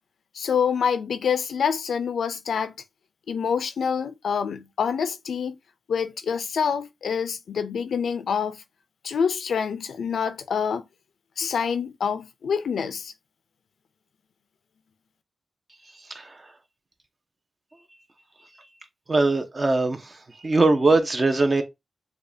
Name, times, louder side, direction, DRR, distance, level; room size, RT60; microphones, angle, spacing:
voice 1, 0.3-2.7 3.3-5.6 5.9-8.6 9.0-10.8 11.4-13.1, left 6 dB, 85° left, 0.5 m, -26 dB
voice 2, 19.1-20.2 20.4-21.6, right 3 dB, 35° right, 0.9 m, -21 dB
6.7 x 2.4 x 2.7 m
cardioid pair, 80°, 0 cm